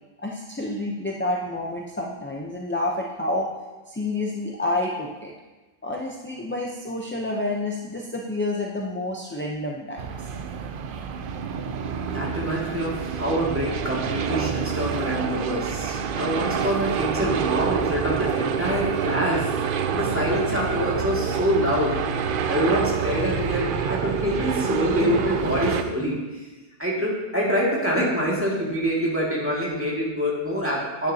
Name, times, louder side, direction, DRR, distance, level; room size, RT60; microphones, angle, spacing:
voice 1, 0.2-3.5 3.9-5.3 5.8-10.1, left 2 dB, 15° left, -2 dB, 0.5 m, -29 dB
sound 1, 10.0-25.8, right 7 dB, 60° right, 0.7 m, -27 dB
voice 2, 12.1-19.5 19.9-22.0 22.5-26.2 26.8-31.1, equal, 10° right, -6 dB, 2.0 m, -25 dB
9.4 x 9.2 x 2.8 m, 1.2 s
omnidirectional pair, 1.2 m